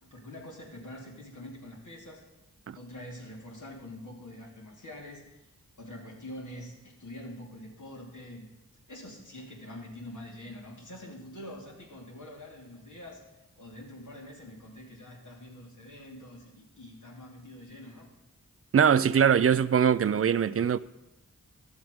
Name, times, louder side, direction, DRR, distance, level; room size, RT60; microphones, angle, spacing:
voice 1, 0.0-2.2 2.7-5.2 5.8-8.5 8.9-13.2 13.6-18.1, left 1 dB, 65° left, 2.7 m, -45 dB
voice 2, 18.7-20.8, right 8 dB, 45° right, 0.4 m, -22 dB
12.0 x 7.2 x 5.1 m
cardioid pair, 40°, 33 cm